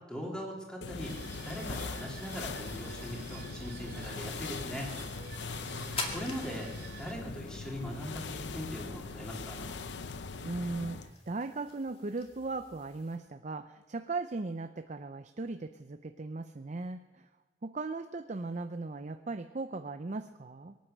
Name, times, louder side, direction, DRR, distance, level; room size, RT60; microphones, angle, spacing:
voice 1, 0.1-1.2 1.4-5.0 6.1-6.7 7.0-9.7, equal, 5° left, -2 dB, 3.3 m, -40 dB
sound 1, 0.8-11.1, left 4 dB, 85° left, 0.7 m, -41 dB
sound 2, 1.0-7.1, right 6 dB, 80° right, 3.1 m, -51 dB
sound 3, 3.7-13.2, left 3 dB, 35° left, 2.3 m, -47 dB
voice 2, 5.5-6.2 10.4-17.3 17.6-20.8, right 3 dB, 40° right, 8 dB, 0.6 m, -38 dB
23.0 x 9.3 x 6.6 m, 1.3 s
head